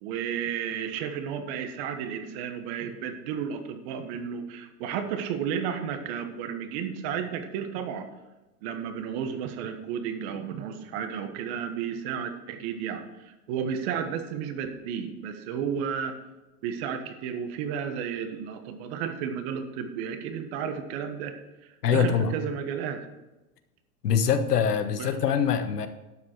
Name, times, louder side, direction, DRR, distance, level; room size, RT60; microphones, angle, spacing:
voice 1, 0.0-8.1 8.6-16.2 16.6-21.3 21.9-23.1 24.9-25.3, right 7 dB, 45° right, 8 dB, 1.4 m, -33 dB
voice 2, 21.8-22.3 24.0-25.9, left 7 dB, 90° left, 9 dB, 1.3 m, -24 dB
12.0 x 7.1 x 4.6 m, 1.1 s
hypercardioid pair, 135°, 46 cm